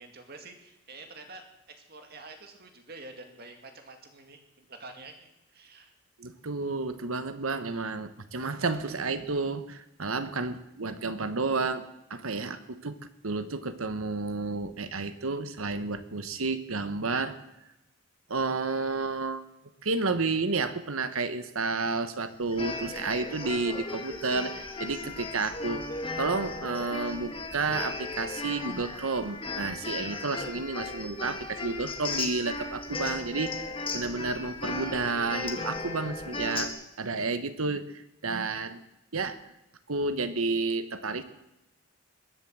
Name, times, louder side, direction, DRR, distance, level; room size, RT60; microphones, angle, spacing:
voice 1, 0.0-5.9 7.9-8.2, right 3 dB, 45° right, 5 dB, 2.1 m, -48 dB
voice 2, 6.2-13.0 13.2-17.4 18.3-19.4 19.8-25.9 26.2-38.8 39.1-39.4 39.9-41.2, right 3 dB, 80° right, 11 dB, 1.2 m, -31 dB
sound 1, 22.5-36.7, left 3 dB, 25° left, 1.5 m, -36 dB
21.0 x 7.5 x 7.6 m, 0.92 s
head